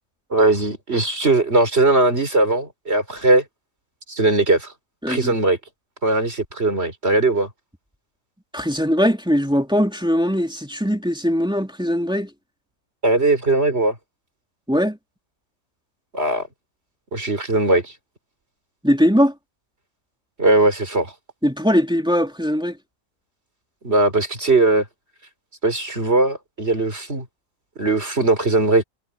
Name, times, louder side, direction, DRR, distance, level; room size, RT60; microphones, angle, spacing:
voice 1, 0.3-3.4 4.1-4.7 5.1-5.6 6.0-7.5 13.0-13.9 16.1-16.5 17.1-17.9 20.4-21.1 23.8-24.8 25.6-27.3 27.8-28.8, right 2 dB, 40° right, 4.4 m, -19 dB
voice 2, 5.0-5.4 8.5-12.3 14.7-15.0 18.8-19.3 21.4-22.8, equal, 5° right, 2.8 m, -20 dB
omnidirectional pair, 1.7 m